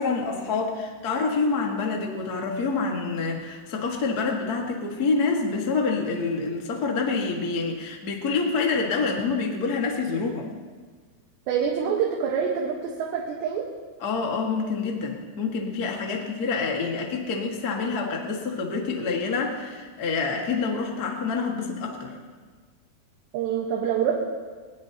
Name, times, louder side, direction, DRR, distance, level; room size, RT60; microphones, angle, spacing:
voice 1, 0.0-10.5 14.0-22.1, left 4 dB, 50° left, 0 dB, 1.1 m, -27 dB
voice 2, 11.5-13.7 23.3-24.1, right 7 dB, 85° right, -2 dB, 3.5 m, -26 dB
21.0 x 20.0 x 2.9 m, 1.5 s
omnidirectional pair, 4.8 m